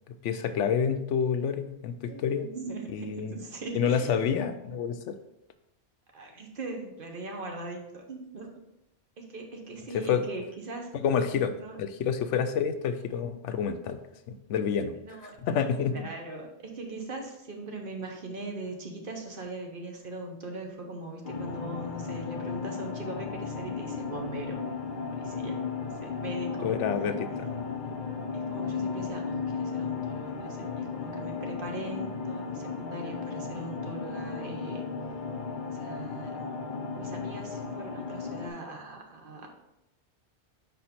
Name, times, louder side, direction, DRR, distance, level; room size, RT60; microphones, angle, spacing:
voice 1, 0.1-2.5 2.9-3.4 3.7-5.2 9.9-10.2 10.9-14.0 14.3-14.9 15.2-16.1 26.6-27.5, left 7 dB, 90° left, 9 dB, 0.9 m, -28 dB
voice 2, 2.1-4.3 6.1-8.5 9.2-10.9 11.6-11.8 15.0-15.4 15.9-24.6 25.1-26.7 26.9-27.0 28.3-34.9 35.7-36.5 36.9-39.5, right 2 dB, 50° right, 2 dB, 1.1 m, -40 dB
sound 1, 21.2-38.5, left 5 dB, 50° left, 0.8 m, -35 dB
5.3 x 4.5 x 4.2 m, 0.87 s
omnidirectional pair, 1.2 m